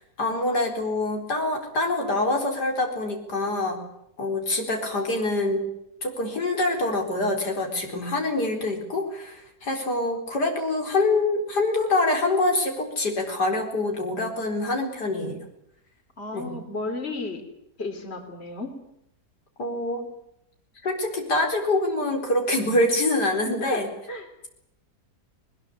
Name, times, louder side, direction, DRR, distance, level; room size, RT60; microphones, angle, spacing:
voice 1, 0.2-3.8 4.2-5.7 6.0-15.4 16.3-16.6 19.6-20.0 20.8-23.9, left 2 dB, 80° left, 2 dB, 4.8 m, -25 dB
voice 2, 16.2-17.4 17.8-18.7 23.5-23.8 24.1-24.3, left 2 dB, 40° left, 5 dB, 3.8 m, -33 dB
21.5 x 20.5 x 9.8 m, 0.78 s
omnidirectional pair, 1.8 m